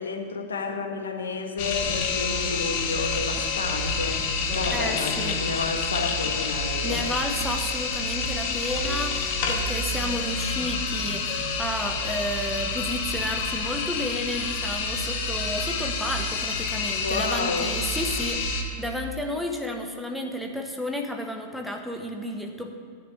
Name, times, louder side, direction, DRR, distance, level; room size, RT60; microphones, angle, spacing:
voice 1, 0.0-7.3 17.0-17.7, left 4 dB, 70° left, 3 dB, 1.3 m, -31 dB
sound 1, 1.6-18.6, left 3 dB, 45° left, 1.4 m, -28 dB
sound 2, 1.6-12.2, left 8 dB, 30° left, 1.0 m, -43 dB
voice 2, 4.7-5.4 6.8-22.8, left 1 dB, ahead, 2 dB, 1.3 m, -32 dB
10.5 x 6.8 x 8.1 m, 2.4 s
figure-of-eight pair, 90°, 0 cm